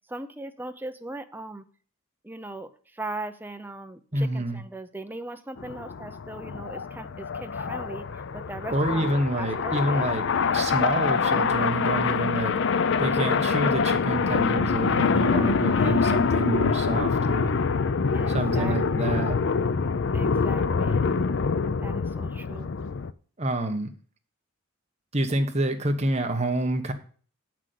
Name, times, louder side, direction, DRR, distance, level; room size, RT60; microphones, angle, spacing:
voice 1, 0.1-1.6 2.2-9.1 9.4-10.1 14.9-16.0 18.1-18.8 20.1-21.1 21.8-22.7, right 2 dB, 10° right, 8 dB, 0.6 m, -39 dB
voice 2, 4.1-4.6 8.7-10.2 10.5-12.5 13.0-17.5 18.3-19.4 23.4-23.9 25.1-26.9, right 1 dB, 30° right, 5 dB, 1.2 m, -27 dB
sound 1, 5.6-23.1, left 5 dB, 55° left, 0.5 m, -25 dB
8.1 x 6.1 x 7.6 m, 0.43 s
head